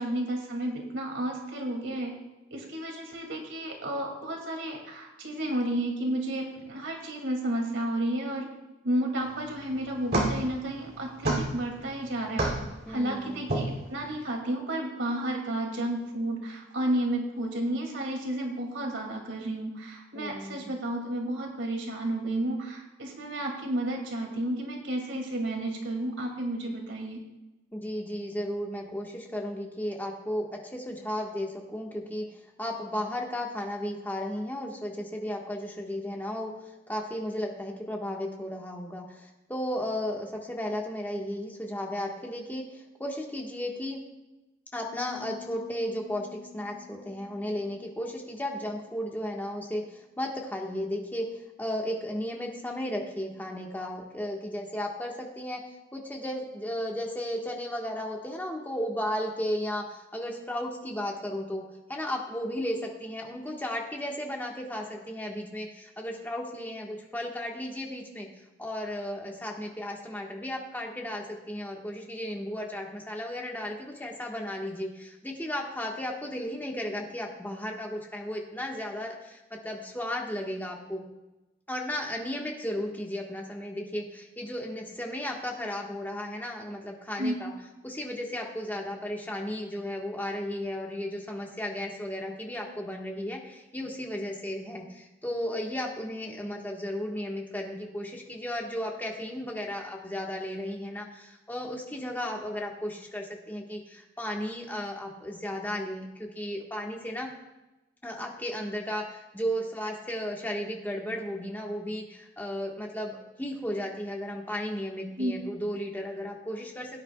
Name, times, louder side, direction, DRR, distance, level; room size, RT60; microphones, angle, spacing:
voice 1, 0.0-2.1 2.5-8.5 8.8-12.5 12.9-27.2 87.2-87.4 115.2-115.4, right 1 dB, 90° right, 1 dB, 2.4 m, -32 dB
sound 1, 9.2-14.2, right 1 dB, 60° right, 2.8 m, -32 dB
voice 2, 12.9-13.4 20.1-20.7 27.7-44.0 44.7-55.6 55.9-61.6 61.9-68.3 68.6-81.0 81.7-87.5 87.8-107.3 108.0-117.0, left 1 dB, 10° left, 0 dB, 1.4 m, -34 dB
Piano, 44.9-50.5, left 9 dB, 40° right, 4.3 m, -51 dB
17.0 x 9.5 x 2.3 m, 1.0 s
head